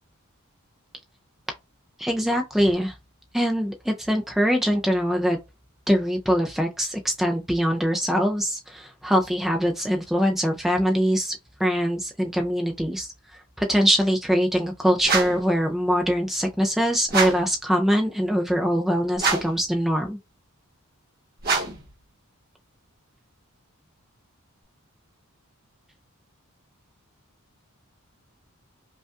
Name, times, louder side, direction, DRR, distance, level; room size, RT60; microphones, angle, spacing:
voice 1, 2.0-2.9 3.3-5.4 5.9-13.1 13.6-20.2, equal, ahead, 0.3 m, -23 dB
sound 1, 15.0-15.5 17.1-17.5 19.2-19.7 21.4-21.9, right 4 dB, 45° right, 1.2 m, -25 dB
5.2 x 2.2 x 2.4 m
head